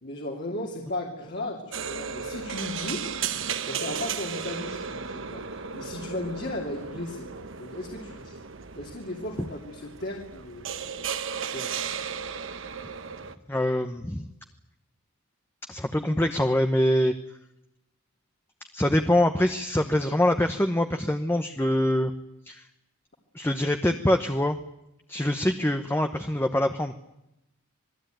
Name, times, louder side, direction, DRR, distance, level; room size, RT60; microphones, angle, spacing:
voice 1, 0.0-3.0 3.6-8.4 8.7-10.7 11.5-11.7 25.2-25.3, left 1 dB, 50° left, 0 dB, 2.7 m, -36 dB
sound 1, 1.7-13.4, right 6 dB, 60° right, 1.1 m, -35 dB
voice 2, 13.5-14.3 15.7-17.1 18.7-22.1 22.4-22.6 23.3-24.6 25.1-26.9, left 1 dB, 10° left, 6 dB, 0.9 m, -24 dB
27.0 x 19.5 x 9.2 m, 0.87 s
head